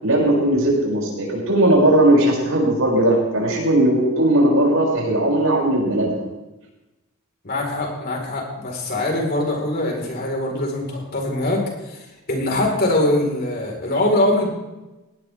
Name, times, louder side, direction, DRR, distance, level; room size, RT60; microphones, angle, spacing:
voice 1, 0.0-6.2, right 1 dB, 70° right, -3 dB, 7.0 m, -18 dB
voice 2, 7.4-12.0 12.3-14.5, left 1 dB, 45° left, 0 dB, 4.6 m, -22 dB
18.5 x 18.0 x 3.6 m, 1.0 s
head